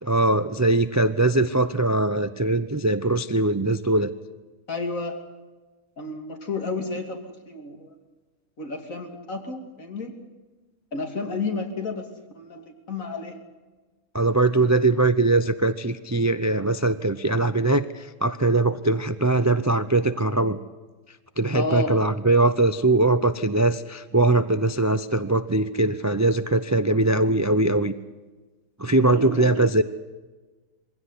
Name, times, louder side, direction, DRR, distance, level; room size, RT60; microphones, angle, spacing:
voice 1, 0.0-4.1 14.1-20.6 21.4-27.9 28.8-29.8, right 2 dB, 30° right, 12 dB, 0.3 m, -21 dB
voice 2, 4.7-5.2 6.0-7.9 8.6-10.2 10.9-12.1 12.3-13.4 21.5-21.9 29.1-29.7, left 3 dB, 65° left, 4 dB, 3.1 m, -31 dB
22.5 x 16.5 x 9.8 m, 1.2 s
omnidirectional pair, 1.5 m